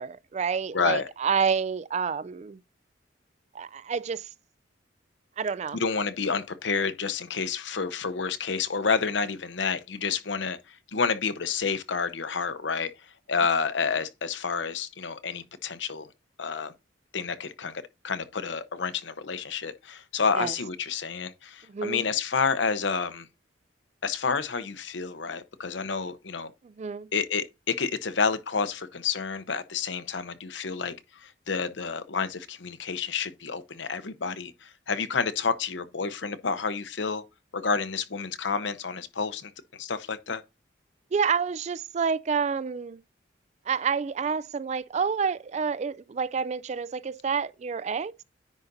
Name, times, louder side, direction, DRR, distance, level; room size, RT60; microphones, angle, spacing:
voice 1, 0.0-2.6 3.5-4.3 5.4-5.8 20.4-20.5 21.7-22.0 26.6-27.1 41.1-43.0 43.7-48.2, right 6 dB, 35° right, 0.3 m, -28 dB
voice 2, 0.7-1.1 5.7-12.9 13.3-16.1 16.4-16.7 17.1-23.3 24.0-26.5 27.1-37.2 37.5-40.4, left 5 dB, 70° left, 0.8 m, -29 dB
9.9 x 4.0 x 3.9 m
head